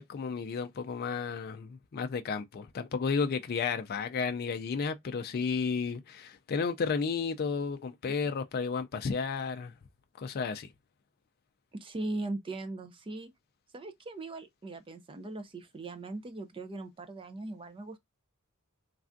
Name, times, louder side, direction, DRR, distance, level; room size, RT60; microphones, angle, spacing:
voice 1, 0.0-9.7 10.2-10.7, left 5 dB, 45° left, 0.4 m, -32 dB
voice 2, 11.7-13.3 13.7-18.0, right 2 dB, 25° right, 0.4 m, -39 dB
3.3 x 2.4 x 2.4 m
head